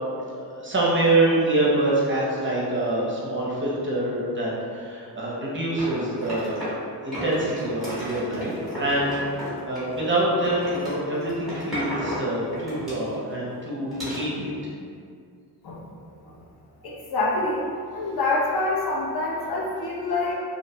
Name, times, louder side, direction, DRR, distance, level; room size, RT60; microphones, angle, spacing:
voice 1, 0.2-6.6 7.0-14.5, right 1 dB, 30° right, -5 dB, 0.5 m, -25 dB
sound 1, 5.8-6.8 7.1-10.1 10.4-13.3 13.9-14.2, equal, ahead, 0.9 m, -34 dB
voice 2, 16.8-17.6 17.9-20.3, left 2 dB, 70° left, -5 dB, 0.6 m, -26 dB
2.6 x 2.0 x 2.6 m, 2.3 s
wide cardioid pair, 130°, 40 cm